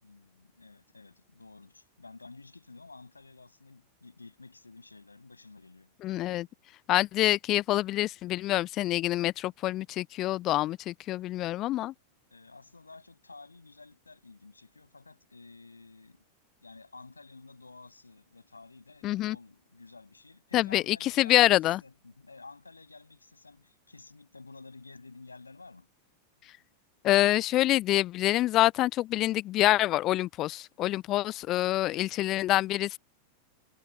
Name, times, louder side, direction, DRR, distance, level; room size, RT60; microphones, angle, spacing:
voice 1, 0.0-5.9 12.3-16.2 16.6-25.9, left 3 dB, 80° left, 7.4 m, -51 dB
voice 2, 6.0-6.5 6.9-11.9 19.0-19.4 20.5-21.8 27.0-33.0, left 15 dB, 35° left, 0.4 m, -26 dB
figure-of-eight pair, 90°, 0 cm